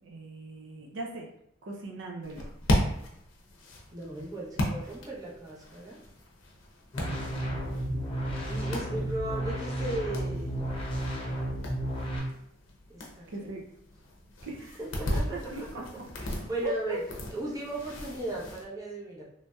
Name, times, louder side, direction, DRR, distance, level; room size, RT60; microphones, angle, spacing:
voice 1, 0.0-1.3 1.6-2.5 7.0-8.3 8.9-9.2 13.3-13.6 14.4-14.8 15.3-15.8 16.6-17.0, right 2 dB, 65° right, 0 dB, 0.5 m, -40 dB
sound 1, 2.2-18.6, left 1 dB, 70° left, 0.6 m, -36 dB
voice 2, 3.9-6.0 8.5-10.8 12.9-13.5 14.8-15.8 16.2-17.0 17.3-19.2, right 1 dB, 20° right, -5 dB, 0.6 m, -37 dB
sound 2, 6.9-12.2, right 1 dB, 30° left, 0.6 m, -32 dB
3.1 x 2.7 x 2.2 m, 0.76 s
head